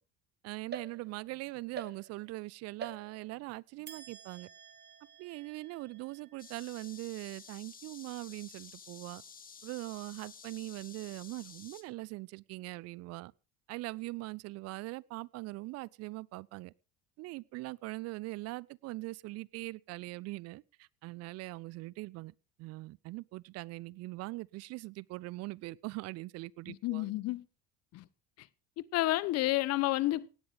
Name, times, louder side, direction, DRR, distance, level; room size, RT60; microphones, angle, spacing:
voice 1, 0.4-4.5 5.2-9.2 9.6-13.3 13.7-16.7 17.2-22.3 22.6-27.1, right 21 dB, 55° right, 0.6 m, -42 dB
sound 1, 0.7-1.4 1.8-2.4 2.8-3.5 3.9-7.3, right 6 dB, 35° right, 2.4 m, -49 dB
sound 2, 6.4-11.8, left 6 dB, 30° left, 2.4 m, -52 dB
voice 2, 26.7-27.4 27.9-28.0 28.4-28.5 28.9-30.3, left 17 dB, 60° left, 1.1 m, -30 dB
17.5 x 9.7 x 5.1 m
hypercardioid pair, 80°, 29 cm